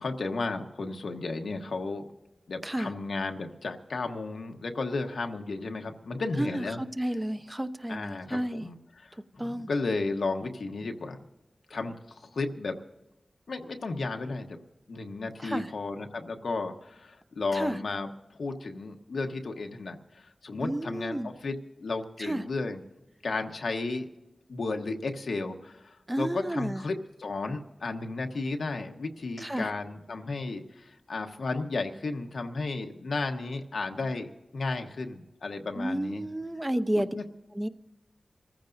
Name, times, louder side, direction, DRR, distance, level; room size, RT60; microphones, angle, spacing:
voice 1, 0.0-2.1 2.5-6.8 7.9-11.2 11.7-12.8 13.5-14.6 14.9-22.8 23.2-24.1 24.5-36.2 36.9-37.2, left 3 dB, 90° left, 5 dB, 1.2 m, -34 dB
voice 2, 6.4-8.7 9.4-9.7 15.4-15.7 17.5-17.8 20.6-21.3 22.2-22.4 26.1-26.8 29.4-29.7 35.8-37.1 37.5-37.7, right 1 dB, 15° right, 11 dB, 0.7 m, -31 dB
26.5 x 15.0 x 2.6 m, 1.0 s
wide cardioid pair, 75°, 0 cm